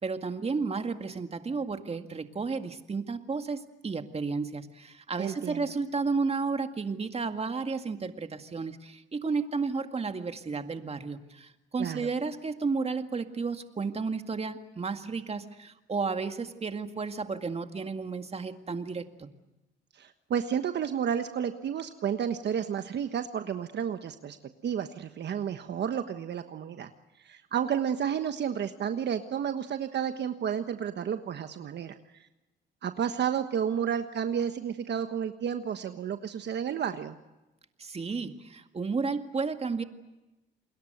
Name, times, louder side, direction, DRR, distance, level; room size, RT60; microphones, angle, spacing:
voice 1, 0.0-19.3 37.8-39.8, right 4 dB, 30° right, 7 dB, 2.1 m, -32 dB
voice 2, 5.2-5.7 11.8-12.0 19.9-24.4 24.6-26.9 27.2-32.3 32.8-37.2, right 8 dB, 60° right, 8 dB, 1.3 m, -31 dB
29.0 x 21.5 x 8.0 m, 1.0 s
cardioid pair, 90°, 20 cm